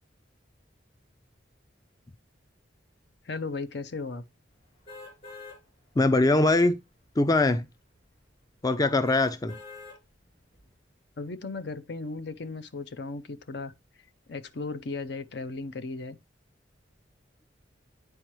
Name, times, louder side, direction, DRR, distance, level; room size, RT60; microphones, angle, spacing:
voice 1, 3.2-4.3 11.2-13.7 14.3-16.2, left 3 dB, 60° left, 0.6 m, -36 dB
sound 1, 4.9-5.6 6.1-6.2 9.0-10.0 10.5-10.6, left 3 dB, 35° left, 3.4 m, -44 dB
voice 2, 6.0-6.8 7.2-7.7 8.6-9.6, left 2 dB, 20° left, 0.4 m, -22 dB
9.0 x 4.5 x 3.1 m
head